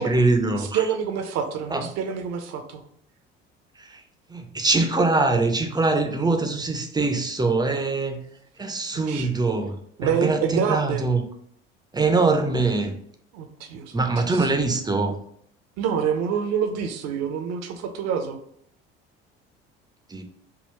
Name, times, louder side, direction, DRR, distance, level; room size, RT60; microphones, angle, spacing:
voice 1, 0.0-0.8 1.7-1.9 3.8-4.0 4.3-8.2 8.6-11.2 11.9-12.9 13.9-15.2 20.1-20.2, right 3 dB, 15° right, 6 dB, 0.6 m, -23 dB
voice 2, 0.6-2.8 8.9-9.3 10.0-11.0 13.3-14.5 15.8-18.4, right 7 dB, 60° right, 6 dB, 0.7 m, -27 dB
3.7 x 2.3 x 4.3 m, 0.68 s
hypercardioid pair, 65°, 29 cm